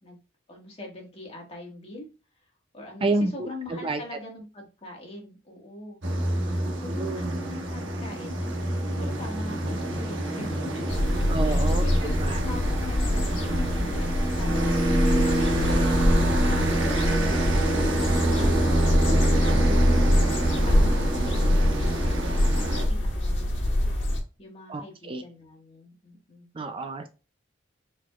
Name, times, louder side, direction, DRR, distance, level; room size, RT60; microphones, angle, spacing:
voice 1, 0.5-2.1 2.7-6.0 6.8-10.5 10.7-10.9 11.3-23.8 24.4-26.5, left 1 dB, 30° left, 0 dB, 1.6 m, -43 dB
voice 2, 3.0-4.0 7.0-7.4 11.3-11.9 12.2-12.4 24.7-25.2 26.6-27.1, right 2 dB, 25° right, 8 dB, 0.3 m, -29 dB
sound 1, 6.0-22.8, right 1 dB, 70° right, 1.2 m, -27 dB
sound 2, 10.9-24.2, left 1 dB, 65° left, 1.6 m, -24 dB
sound 3, 12.6-18.9, left 2 dB, 50° left, 1.2 m, -48 dB
4.6 x 4.0 x 2.3 m, 0.31 s
head